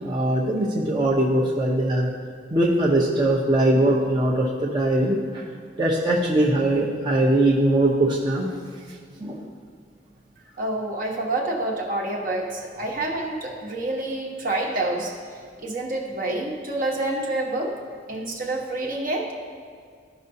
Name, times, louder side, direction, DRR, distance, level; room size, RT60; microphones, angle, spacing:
voice 1, 0.0-2.1 2.5-5.4 5.8-8.5 9.2-9.4, right 1 dB, 25° right, -5 dB, 0.8 m, -21 dB
voice 2, 10.6-15.1 15.6-17.8 18.1-19.3, right 2 dB, 50° right, 0 dB, 1.2 m, -27 dB
14.5 x 5.5 x 2.7 m, 2.1 s
head